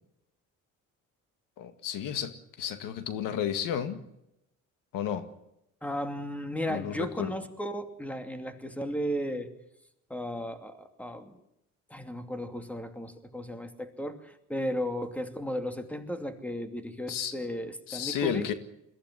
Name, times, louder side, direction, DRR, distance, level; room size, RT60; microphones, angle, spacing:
voice 1, 1.6-4.0 4.9-5.3 6.7-7.3 17.1-17.3 17.9-18.5, left 9 dB, 85° left, 9 dB, 2.0 m, -32 dB
voice 2, 5.8-9.5 10.1-11.4 11.9-18.5, equal, 5° left, 7 dB, 2.7 m, -35 dB
22.0 x 15.5 x 9.8 m, 0.82 s
cardioid pair, 100°, 32 cm